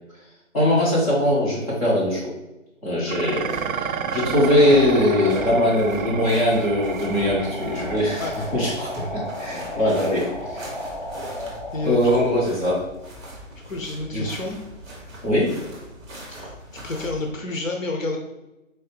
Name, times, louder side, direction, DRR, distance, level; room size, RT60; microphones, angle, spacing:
voice 1, 0.5-2.3 2.8-3.5 3.7-10.7 11.8-12.8 14.1-14.2 15.2-15.6, left 1 dB, 30° left, -7 dB, 1.3 m, -21 dB
Dishes pots and pans, 3.1-11.9, right 7 dB, 90° right, 0.5 m, -33 dB
sound 1, 3.3-17.3, equal, 20° right, 1.3 m, -41 dB
sound 2, 4.6-11.9, left 1 dB, 35° right, 0.4 m, -34 dB
voice 2, 11.7-12.2 13.7-14.6 16.3-18.2, left 2 dB, 75° left, 2 dB, 0.8 m, -29 dB
4.6 x 2.8 x 3.4 m, 1.0 s
hypercardioid pair, 175°, 40 cm